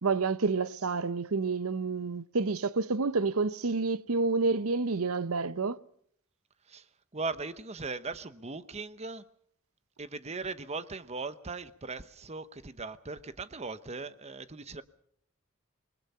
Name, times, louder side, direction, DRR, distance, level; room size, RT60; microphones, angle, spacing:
voice 1, 0.0-5.8, right 4 dB, 90° right, 0.8 m, -29 dB
voice 2, 7.1-9.2 10.0-14.8, right 3 dB, 30° right, 0.9 m, -39 dB
27.5 x 21.0 x 5.6 m
head